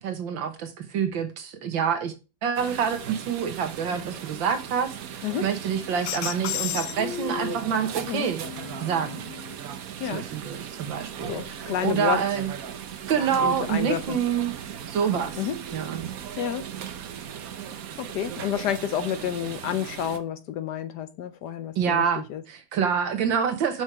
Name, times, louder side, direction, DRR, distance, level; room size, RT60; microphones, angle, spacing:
voice 1, 0.0-2.1 2.4-8.4 8.8-9.3 10.1-12.5 13.1-14.6 14.9-15.4 15.7-16.0 21.8-23.8, right 7 dB, 75° right, 1.9 m, -27 dB
sound 1, 2.6-20.2, right 9 dB, 60° right, 1.1 m, -38 dB
sound 2, 6.0-7.8 8.4-9.5, left 12 dB, 90° left, 1.4 m, -33 dB
voice 2, 11.3-12.2 13.4-14.2 15.4-15.6 16.4-16.7 18.0-22.4, left 10 dB, 70° left, 1.1 m, -30 dB
6.4 x 6.1 x 4.5 m
omnidirectional pair, 2.1 m